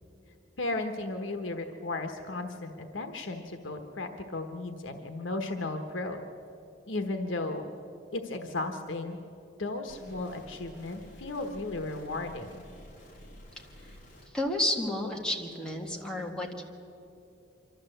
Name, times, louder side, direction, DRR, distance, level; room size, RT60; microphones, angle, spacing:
voice 1, 0.6-6.2 6.9-7.7 8.1-9.2 9.6-12.6, left 2 dB, 85° left, 6 dB, 1.2 m, -35 dB
sound 1, 9.9-14.3, equal, 40° left, 3.2 m, -51 dB
voice 2, 14.3-16.6, left 1 dB, 5° left, -1 dB, 1.8 m, -31 dB
25.0 x 13.5 x 7.9 m, 2.9 s
head